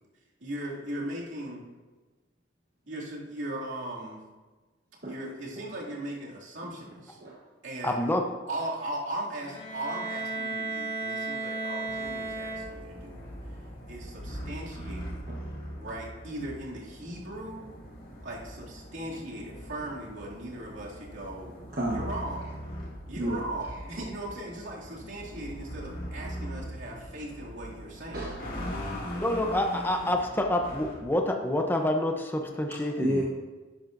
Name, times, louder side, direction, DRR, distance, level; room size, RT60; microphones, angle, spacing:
voice 1, 0.4-1.6 2.9-4.2 5.0-7.2 7.6-8.0 8.5-13.2 13.9-15.2 15.8-17.7 18.2-21.6 21.9-22.5 23.1-28.2, right 1 dB, 80° right, -5 dB, 2.5 m, -38 dB
voice 2, 7.8-8.2 29.2-33.2, left 1 dB, 10° left, 3 dB, 0.7 m, -27 dB
Bowed string instrument, 9.4-13.1, right 3 dB, 30° left, 3.4 m, -34 dB
sound 1, 11.9-31.0, equal, 50° left, 2.3 m, -41 dB
voice 3, 21.7-22.0 23.2-23.4 28.1-29.2 32.7-33.2, right 1 dB, 50° right, -4 dB, 1.2 m, -32 dB
12.5 x 10.5 x 2.6 m, 1.3 s
head